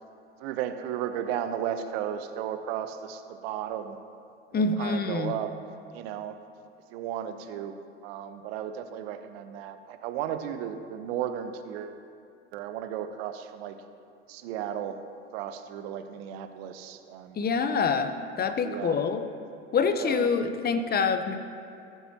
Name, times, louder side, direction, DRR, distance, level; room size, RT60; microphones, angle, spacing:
voice 1, 0.4-4.0 4.5-5.5 5.9-6.4 6.9-7.7 8.0-12.0 12.5-13.8 14.3-15.0 15.3-17.4 18.4-19.0 20.0-20.3, right 10 dB, 65° right, 8 dB, 1.0 m, -34 dB
voice 2, 4.5-5.3 17.4-18.1 18.4-19.2 19.7-21.4, left 5 dB, 30° left, 9 dB, 0.9 m, -26 dB
14.5 x 12.0 x 2.9 m, 2.6 s
hypercardioid pair, 85°, 33 cm